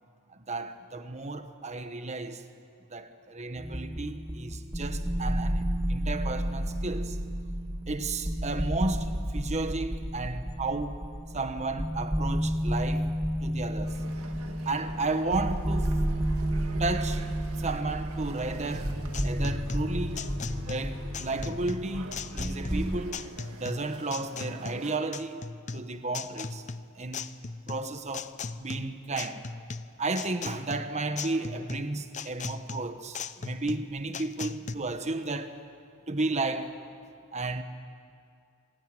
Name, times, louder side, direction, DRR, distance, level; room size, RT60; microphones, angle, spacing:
voice 1, 0.3-2.4 2.9-7.2 7.9-11.0 11.3-13.1 13.4-14.1 14.4-15.9 16.8-17.3 17.6-18.9 19.2-20.2 20.7-23.2 23.6-25.4 25.7-26.6 26.9-27.3 27.7-28.3 28.6-29.4 30.0-35.6 36.1-36.8 37.3-37.6, right 3 dB, 30° right, 1.2 m, -33 dB
sound 1, 3.6-23.0, equal, 10° right, 1.1 m, -31 dB
sound 2, 13.8-25.0, right 3 dB, 85° right, 1.9 m, -47 dB
sound 3, 18.7-34.7, left 4 dB, 35° left, 0.7 m, -38 dB
26.5 x 19.0 x 9.2 m
head